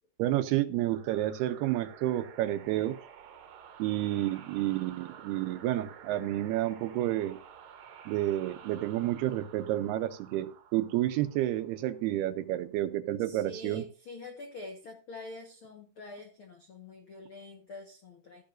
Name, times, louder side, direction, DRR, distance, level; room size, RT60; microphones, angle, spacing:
voice 1, 0.2-3.0 3.8-7.4 8.1-13.8, right 14 dB, 85° right, 11 dB, 2.6 m, -30 dB
sound 1, 0.9-12.2, right 8 dB, 65° right, 2.5 m, -51 dB
voice 2, 13.2-18.4, left 2 dB, 80° left, 2 dB, 1.1 m, -46 dB
14.0 x 10.5 x 2.6 m, 0.35 s
omnidirectional pair, 4.7 m